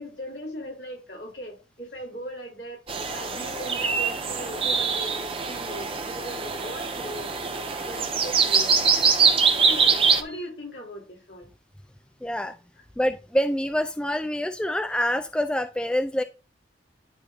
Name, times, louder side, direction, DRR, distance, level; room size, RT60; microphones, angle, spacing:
voice 1, 0.0-7.3 7.9-8.7 9.5-11.5, equal, 70° left, 3.2 m, -39 dB
sound 1, 2.9-10.2, right 5 dB, 30° right, 0.8 m, -23 dB
voice 2, 12.2-12.6 13.0-16.2, equal, 5° left, 0.3 m, -26 dB
11.0 x 3.9 x 3.3 m
head